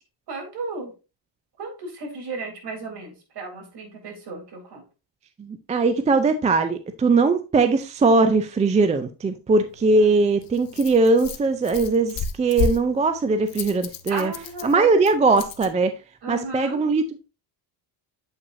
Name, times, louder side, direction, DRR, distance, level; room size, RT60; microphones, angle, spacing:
voice 1, 0.3-0.9 1.6-4.8 9.9-10.1 14.1-14.9 16.2-16.8, right 3 dB, 50° right, 0 dB, 3.5 m, -34 dB
voice 2, 5.4-14.3 14.6-15.9 16.3-17.0, right 3 dB, 15° right, 9 dB, 0.3 m, -20 dB
Rattle, 9.7-15.7, left 6 dB, 45° left, 0.8 m, -33 dB
8.3 x 5.6 x 2.6 m, 0.30 s
cardioid pair, 125°, 50 cm